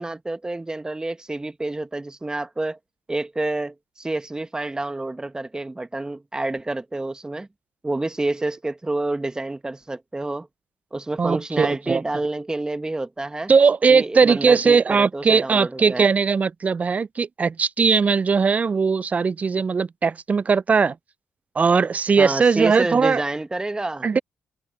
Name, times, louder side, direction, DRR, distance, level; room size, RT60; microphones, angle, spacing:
voice 1, 0.0-2.8 3.1-7.5 7.8-10.5 10.9-13.5 13.9-16.1 22.2-24.1, right 2 dB, 20° right, 1.4 m, -28 dB
voice 2, 11.2-12.0 13.5-20.9 21.6-23.2 24.0-24.2, right 5 dB, 40° right, 0.4 m, -19 dB
hypercardioid pair, 50°, 4 cm